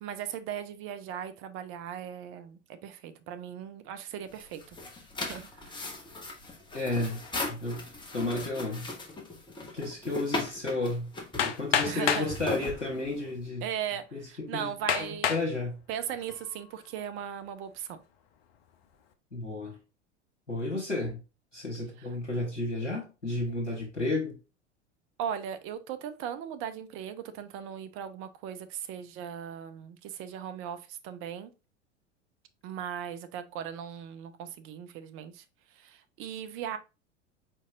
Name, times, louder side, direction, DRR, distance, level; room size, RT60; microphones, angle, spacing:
voice 1, 0.0-4.8 5.2-5.8 11.8-12.3 13.6-15.4 15.9-18.0 22.0-22.1 25.2-31.5 32.6-35.4 35.7-36.8, right 9 dB, 35° right, 0.6 m, -38 dB
sound 1, 4.3-13.4, left 2 dB, 15° left, 1.2 m, -38 dB
voice 2, 6.7-7.2 7.5-7.8 8.1-8.9 9.7-13.6 14.1-15.8 19.3-19.7 20.5-21.2 21.5-24.3, left 2 dB, 85° left, 1.3 m, -32 dB
Hammer, 11.4-12.3 13.2-13.3 13.9-14.0 14.9-15.5 16.1-16.5, left 8 dB, 55° left, 0.8 m, -28 dB
4.7 x 4.5 x 2.4 m
figure-of-eight pair, 80°, 36 cm